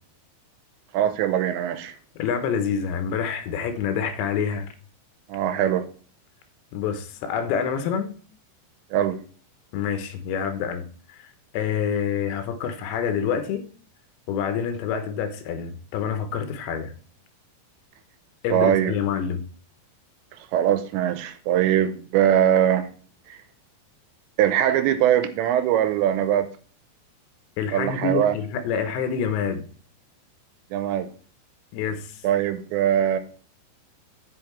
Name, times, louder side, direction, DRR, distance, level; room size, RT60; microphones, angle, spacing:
voice 1, 0.9-2.0 5.3-5.9 8.9-9.2 18.5-18.9 20.5-22.9 23.3-23.4 24.4-26.5 27.7-28.4 30.7-31.1 32.2-33.2, right 10 dB, 85° right, 2.9 m, -21 dB
voice 2, 2.2-4.7 6.7-8.2 9.7-11.2 11.5-13.7 14.3-16.9 18.4-19.4 27.6-29.7 31.7-32.2, left 7 dB, 80° left, 3.2 m, -27 dB
8.7 x 5.4 x 4.4 m
omnidirectional pair, 5.3 m